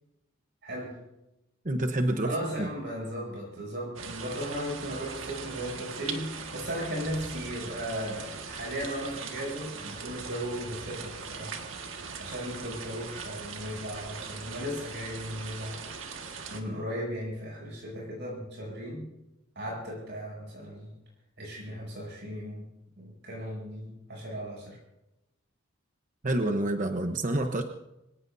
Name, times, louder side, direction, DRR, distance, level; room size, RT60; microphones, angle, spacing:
voice 1, 0.6-0.9 2.2-11.6 11.9-15.8 16.5-19.1 19.6-20.9 21.4-22.7 23.0-24.8, equal, 60° right, -2 dB, 7.1 m, -36 dB
voice 2, 1.6-2.7 26.2-27.6, right 1 dB, 40° right, 5 dB, 1.0 m, -28 dB
sound 1, 4.0-16.6, right 5 dB, 75° right, 1.7 m, -40 dB
25.0 x 18.0 x 2.7 m, 0.90 s
head